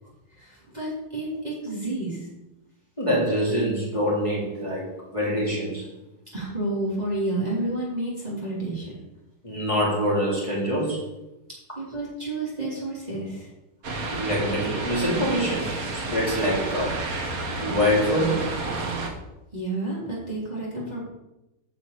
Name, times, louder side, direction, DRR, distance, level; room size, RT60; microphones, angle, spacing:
voice 1, 0.3-2.3 6.3-8.9 11.8-13.5 19.5-21.0, right 2 dB, 20° right, -6 dB, 3.4 m, -30 dB
voice 2, 3.0-4.8 5.1-5.9 9.4-11.0 14.1-17.0 17.6-18.5, equal, 15° left, -6 dB, 3.6 m, -25 dB
sound 1, 13.8-19.1, right 3 dB, 55° right, 1.8 m, -30 dB
9.6 x 5.9 x 8.3 m, 0.96 s
omnidirectional pair, 1.9 m